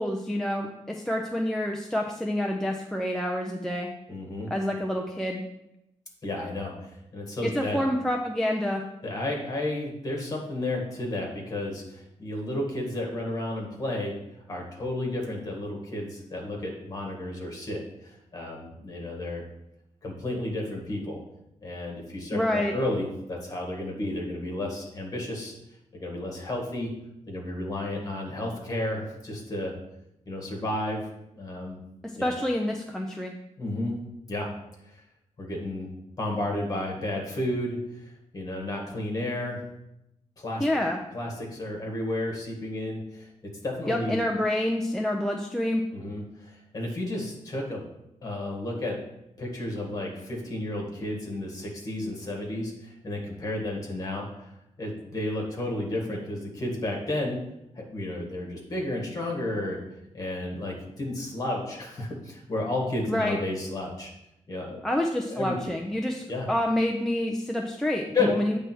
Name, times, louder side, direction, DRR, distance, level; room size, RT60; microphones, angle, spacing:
voice 1, 0.0-3.9 4.5-5.4 7.4-8.9 22.3-22.7 32.0-33.3 40.6-41.0 43.9-45.8 63.1-63.4 64.8-68.6, left 1 dB, 5° left, 1 dB, 0.4 m, -28 dB
voice 2, 4.1-4.5 6.2-7.8 9.0-14.2 14.5-19.4 20.0-21.2 21.6-25.5 25.9-26.9 27.3-29.7 30.3-31.1 31.3-31.8 32.2-32.3 33.6-34.0 34.3-34.5 34.9-35.0 35.4-35.9 36.2-39.6 40.4-40.7 41.1-44.2 45.9-47.8 48.2-49.0 49.4-54.5 54.8-57.4 57.8-59.8 60.1-64.1 64.5-64.8 65.3-65.8 66.3-66.5 68.1-68.3, left 1 dB, 30° left, -1 dB, 1.7 m, -32 dB
8.7 x 3.4 x 6.1 m, 0.87 s
wide cardioid pair, 180°, 13 cm